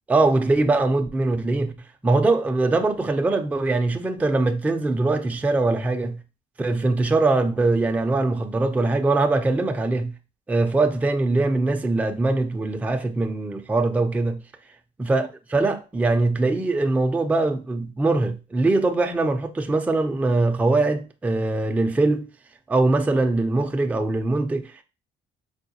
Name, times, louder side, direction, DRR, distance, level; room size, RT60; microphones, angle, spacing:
voice 1, 0.1-1.7 2.0-6.2 6.6-10.1 10.5-14.4 15.0-22.3 22.7-24.8, right 2 dB, 10° right, 0.4 m, -22 dB
4.5 x 2.1 x 2.8 m
cardioid pair, 110°, 17 cm